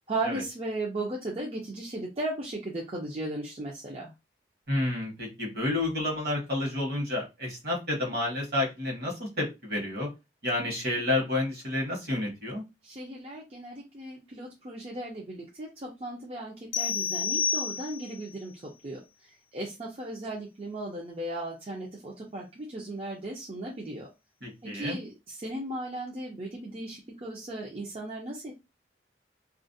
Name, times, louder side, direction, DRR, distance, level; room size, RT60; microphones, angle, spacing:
voice 1, 0.0-4.1 12.8-19.0 19.5-24.1 24.6-28.5, right 2 dB, 35° right, -3 dB, 0.4 m, -36 dB
voice 2, 4.7-10.1 10.4-12.6 24.4-24.9, left 2 dB, 60° right, -1 dB, 1.1 m, -30 dB
sound 1, 16.7-18.3, left 6 dB, 80° left, 0.4 m, -29 dB
2.4 x 2.0 x 2.5 m, 0.24 s
head